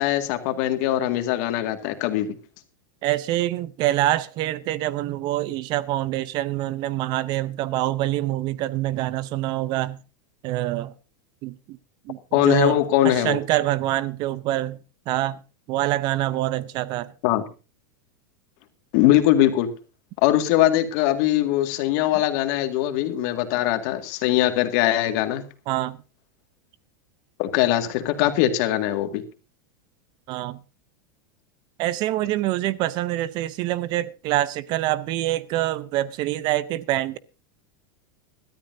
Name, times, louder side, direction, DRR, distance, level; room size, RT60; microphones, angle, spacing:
voice 1, 0.0-2.4 12.3-13.4 17.2-17.4 18.9-19.7 20.2-25.4 27.4-29.2, left 13 dB, 55° left, 2.1 m, -21 dB
voice 2, 3.0-10.0 10.4-10.9 11.4-11.8 12.1-14.8 15.1-15.4 15.7-17.1 25.7-26.0 30.3-30.6 31.8-37.2, right 15 dB, 40° right, 0.7 m, -25 dB
21.5 x 13.0 x 2.7 m
supercardioid pair, 145°, 11 cm